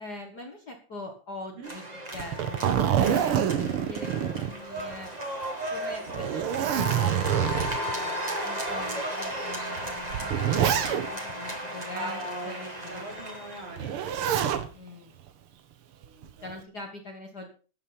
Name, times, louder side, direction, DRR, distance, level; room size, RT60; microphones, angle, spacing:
voice 1, 0.0-1.8 2.1-5.1 5.7-13.0 14.7-15.2 16.4-17.5, left 2 dB, 40° left, 2 dB, 2.0 m, -43 dB
sound 1, 1.6-14.0, right 1 dB, 15° right, 2.5 m, -35 dB
Zipper (clothing), 2.1-5.1 5.4-5.5 6.1-7.9 8.7-8.8 9.8-11.3 13.8-14.7 16.0-16.5, right 9 dB, 60° right, 1.7 m, -26 dB
sound 2, 2.9-3.9 4.4-4.5 5.8-10.6, equal, ahead, 3.3 m, -44 dB
voice 2, 11.9-13.9 16.1-16.5, right 1 dB, 90° right, 1 dB, 5.5 m, -40 dB
14.0 x 8.5 x 5.8 m, 0.38 s
omnidirectional pair, 3.3 m